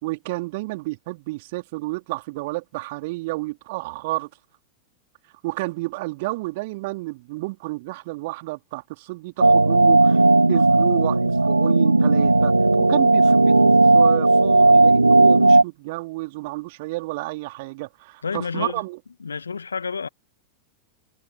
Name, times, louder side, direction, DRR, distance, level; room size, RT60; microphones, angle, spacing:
voice 1, 0.0-4.3 5.4-10.2 10.5-19.0, right 22 dB, 50° right, 3.3 m, -30 dB
sound 1, 9.4-15.6, right 2 dB, 80° right, 0.4 m, -15 dB
voice 2, 18.2-18.8 19.2-20.1, left 5 dB, 75° left, 1.8 m, -29 dB
figure-of-eight pair, 90°, 0 cm